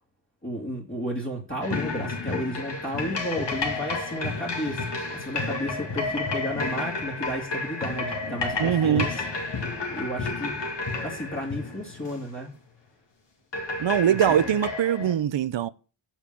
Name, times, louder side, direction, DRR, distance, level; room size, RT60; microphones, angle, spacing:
voice 1, 0.4-9.2 9.9-10.6 11.0-12.5 14.1-14.5, equal, 25° left, 2.5 m, -33 dB
sound 1, 1.6-12.4 13.5-15.1, left 3 dB, 60° left, 2.3 m, -31 dB
voice 2, 8.6-9.1 13.8-15.7, right 9 dB, 60° right, 0.7 m, -22 dB
7.3 x 7.2 x 7.4 m
wide cardioid pair, 100°, 49 cm